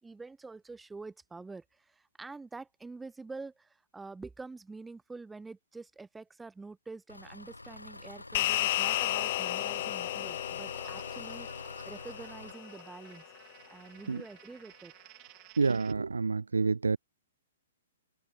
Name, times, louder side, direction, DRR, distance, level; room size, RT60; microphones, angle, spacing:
voice 1, 0.0-13.2 13.7-14.9, right 3 dB, 10° right, 4.4 m, -46 dB
Engine, 7.1-12.5, left 2 dB, 90° left, 1.9 m, -47 dB
sound 1, 8.3-13.0, left 16 dB, 45° left, 0.5 m, -33 dB
sound 2, 10.7-15.9, right 27 dB, 35° right, 3.6 m, -56 dB
voice 2, 15.6-17.0, right 4 dB, 80° right, 0.4 m, -28 dB
open air
figure-of-eight pair, 115°, 0 cm